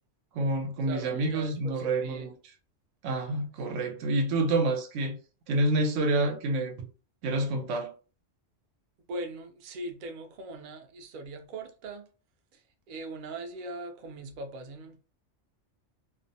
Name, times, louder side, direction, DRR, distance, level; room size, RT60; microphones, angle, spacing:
voice 1, 0.3-2.3 3.0-5.2 5.5-6.9 7.2-7.9, right 2 dB, 90° right, 1.0 m, -28 dB
voice 2, 0.9-2.3 9.1-12.1 12.5-15.0, right 2 dB, 60° right, 0.5 m, -40 dB
2.5 x 2.1 x 2.6 m
omnidirectional pair, 1.2 m